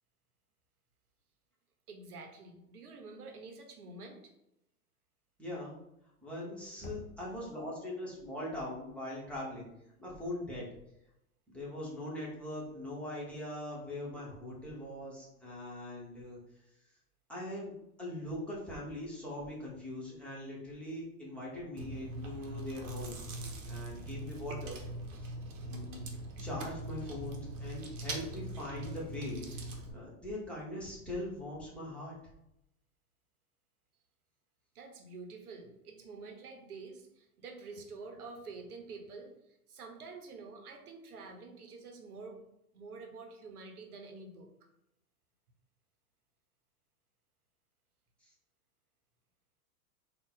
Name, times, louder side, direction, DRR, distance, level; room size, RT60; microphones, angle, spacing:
voice 1, 1.9-4.3 34.7-42.4 42.7-44.5, right 3 dB, 80° right, 3 dB, 0.9 m, -48 dB
voice 2, 5.4-5.8 6.2-9.7 10.0-10.7 11.5-16.4 17.3-23.3 23.7-24.8 25.7-26.0 26.4-32.2, left 1 dB, 5° left, -6 dB, 1.4 m, -41 dB
Knock, 6.8-7.7, left 1 dB, 45° left, 0.9 m, -49 dB
Chewing mastication, 21.8-29.9, right 1 dB, 55° right, 1.0 m, -42 dB
3.8 x 2.5 x 3.9 m, 0.84 s
hypercardioid pair, 100°, 45 cm